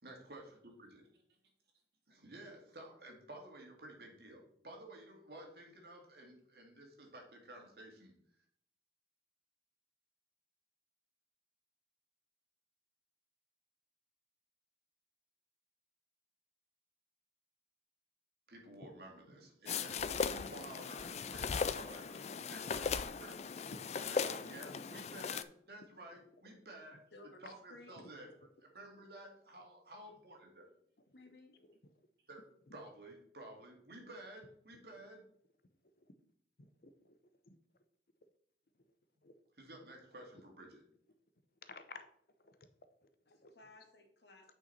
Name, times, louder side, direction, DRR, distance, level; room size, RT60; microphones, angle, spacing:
voice 1, 0.0-1.1 2.1-8.1 18.5-23.5 24.0-27.0 27.4-28.3 28.7-30.7 32.3-32.4 32.7-35.3 39.6-40.8, right 1 dB, 60° right, 1 dB, 2.2 m, -53 dB
sound 1, 19.7-25.4, left 5 dB, 40° left, 0.3 m, -38 dB
voice 2, 23.7-24.4 26.5-26.6 27.4-27.5 28.4-28.5 31.5-31.9 32.7-32.8 34.7-34.8 35.9-36.1 36.6-37.6 38.7-38.9 39.2-39.3 40.3-40.4 41.6-42.1 42.4-42.6 43.0-43.5 44.5-44.6, left 3 dB, 55° left, 10 dB, 0.7 m, -56 dB
voice 3, 31.1-31.6 43.5-44.5, left 2 dB, 75° left, 3 dB, 1.8 m, -57 dB
8.7 x 5.6 x 4.2 m, 0.66 s
head